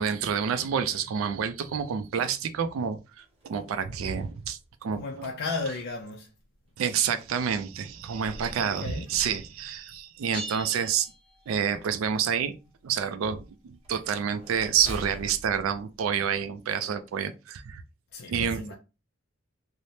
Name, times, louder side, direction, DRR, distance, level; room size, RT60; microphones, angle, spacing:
voice 1, 0.0-5.3 6.8-11.1 11.5-12.5 12.8-17.8 18.3-18.6, right 7 dB, 80° right, 0.3 m, -28 dB
sound 1, 3.1-5.1 5.9-6.0 7.8-10.4 13.8-16.9, equal, 30° right, 0.8 m, -46 dB
voice 2, 4.9-6.3 8.6-9.1 18.1-18.7, left 3 dB, 55° left, 0.4 m, -34 dB
sound 2, 10.3-11.9, right 1 dB, 25° left, 1.0 m, -41 dB
3.2 x 2.0 x 2.7 m
head